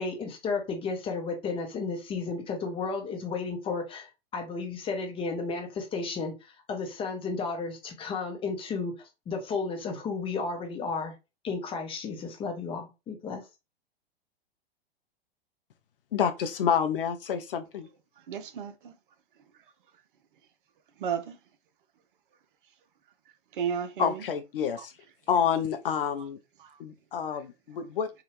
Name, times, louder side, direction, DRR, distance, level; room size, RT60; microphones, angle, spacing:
voice 1, 0.0-4.1 4.3-6.3 6.7-8.9 9.3-11.1 11.4-13.4, left 4 dB, 20° left, 0.8 m, -33 dB
voice 2, 16.1-17.9 24.0-24.9 25.3-26.4 26.8-28.1, left 8 dB, 60° left, 0.5 m, -28 dB
voice 3, 18.3-18.9 21.0-21.4 23.5-24.2 24.8-24.9 26.0-26.1 26.6-26.8 27.3-27.4, right 7 dB, 55° right, 0.6 m, -33 dB
2.7 x 2.4 x 3.0 m
figure-of-eight pair, 100°, 30 cm